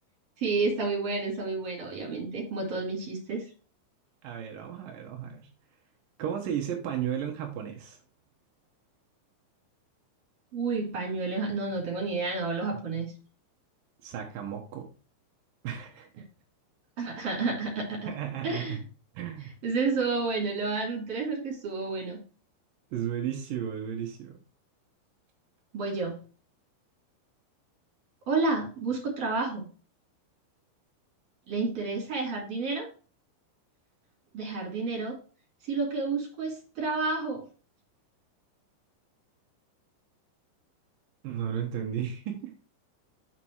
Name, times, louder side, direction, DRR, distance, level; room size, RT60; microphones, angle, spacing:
voice 1, 0.4-3.5 10.5-13.1 17.0-18.1 18.4-18.8 19.6-22.2 25.7-26.2 28.3-29.6 31.5-32.9 34.3-35.1 35.7-37.4, right 3 dB, 35° right, 0 dB, 3.3 m, -30 dB
voice 2, 4.2-5.5 6.2-8.0 14.0-14.9 15.6-16.3 18.1-18.8 19.1-19.6 22.9-24.4 41.2-42.5, right 9 dB, 85° right, 2 dB, 1.9 m, -34 dB
6.7 x 5.8 x 4.7 m, 0.37 s
omnidirectional pair, 5.7 m